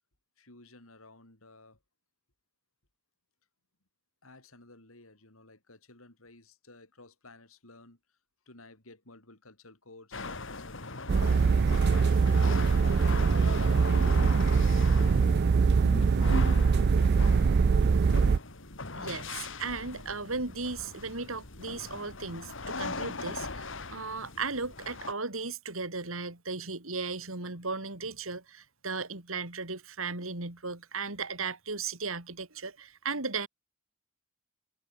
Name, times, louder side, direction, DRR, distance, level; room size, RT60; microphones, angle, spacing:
voice 1, 0.4-1.8 4.2-8.0 8.5-11.0 11.5-13.1 13.7-14.9 15.3-16.2, left 2 dB, 80° left, 5.3 m, -54 dB
sound 1, 10.1-25.1, left 3 dB, 60° left, 3.2 m, -40 dB
sound 2, 11.1-18.4, right 5 dB, 50° right, 0.4 m, -23 dB
voice 2, 19.0-33.5, right 4 dB, 70° right, 3.7 m, -36 dB
head